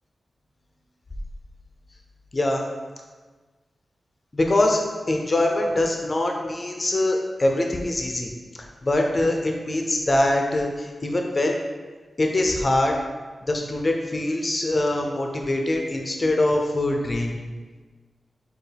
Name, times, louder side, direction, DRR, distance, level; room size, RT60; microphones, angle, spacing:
voice 1, 2.3-2.6 4.3-8.3 8.8-11.6 12.2-12.9 13.5-17.3, left 1 dB, 30° left, 2 dB, 0.4 m, -23 dB
6.5 x 2.3 x 3.3 m, 1.4 s
wide cardioid pair, 125°, 0 cm